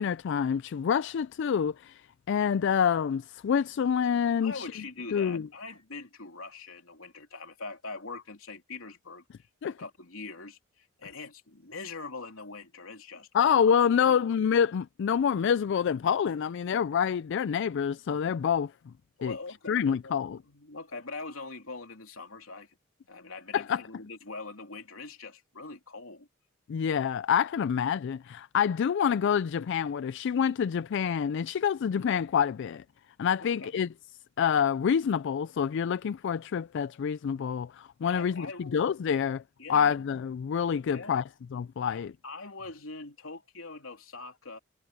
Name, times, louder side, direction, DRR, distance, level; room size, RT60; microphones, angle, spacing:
voice 1, 0.0-2.0 2.3-4.7 5.1-5.5 9.6-9.7 13.3-18.7 19.2-19.3 19.7-20.4 23.5-23.8 26.7-32.8 33.2-33.9 34.4-39.4 39.7-41.2 41.5-42.1, left 7 dB, 60° left, 0.3 m, -27 dB
voice 2, 4.4-9.2 9.7-13.6 14.0-14.3 19.2-22.7 23.1-26.3 33.4-33.8 38.1-38.9 39.6-39.9 40.9-41.2 41.9-44.6, left 3 dB, 90° left, 3.2 m, -43 dB
head